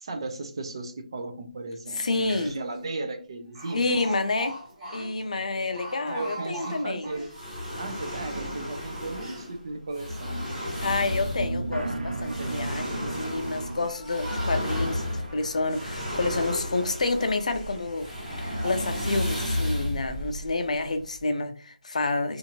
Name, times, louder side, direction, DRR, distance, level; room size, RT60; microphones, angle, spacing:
voice 1, 0.0-3.9 6.0-7.4 7.7-10.6 12.4-13.1, right 2 dB, 35° right, 0.5 m, -36 dB
voice 2, 2.0-2.6 3.7-4.6 4.9-7.1 10.8-18.1 18.4-22.4, left 3 dB, 55° left, 0.5 m, -29 dB
Speech, 2.0-2.1 2.2-2.8 3.6-7.4 7.9-9.5 10.1-10.9 11.8-12.4 13.1-15.1 15.6-16.4 16.8-17.3 17.9-18.0 18.5-18.9 19.3-19.6, right 1 dB, 20° right, 1.4 m, -42 dB
sound 1, 7.3-21.2, left 1 dB, 5° left, 1.2 m, -33 dB
sound 2, 10.8-20.3, right 2 dB, 90° right, 0.8 m, -38 dB
2.7 x 2.5 x 2.8 m
figure-of-eight pair, 170°, 4 cm